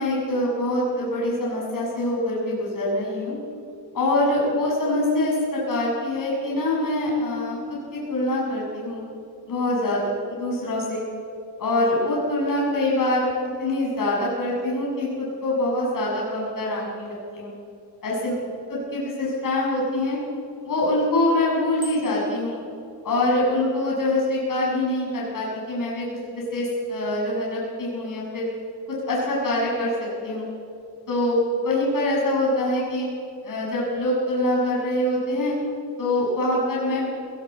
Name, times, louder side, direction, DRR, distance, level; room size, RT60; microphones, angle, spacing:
voice 1, 0.0-3.4 3.9-9.0 9.5-11.0 11.6-13.3 13.6-17.5 18.0-18.3 18.7-20.2 20.6-22.6 23.0-26.0 26.3-28.5 28.9-30.4 31.1-33.1 33.4-35.6 36.0-37.1, left 1 dB, 50° left, -4 dB, 6.8 m, -24 dB
Bicycle bell, 21.8-22.4, left 1 dB, 10° right, 6.1 m, -40 dB
20.5 x 18.5 x 7.4 m, 2.6 s
cardioid pair, 125°, 42 cm